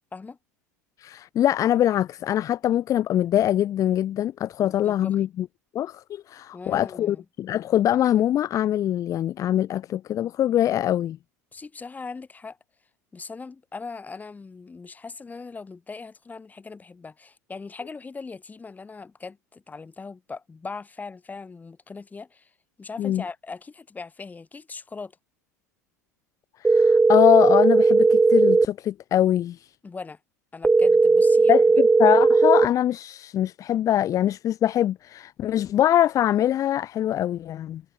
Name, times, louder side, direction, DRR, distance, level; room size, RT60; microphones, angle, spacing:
voice 1, 1.0-5.5 5.7-11.2 23.0-23.2 26.6-29.7 31.5-37.8, left 11 dB, 40° left, 1.3 m, -23 dB
voice 2, 4.6-5.2 6.5-7.2 11.5-12.6 13.1-22.5 22.8-25.1 29.8-30.2 30.5-31.6, left 4 dB, 20° left, 6.5 m, -40 dB
sound 1, 26.6-28.7 30.6-32.7, right 3 dB, 15° right, 1.6 m, -17 dB
figure-of-eight pair, 80°, 9 cm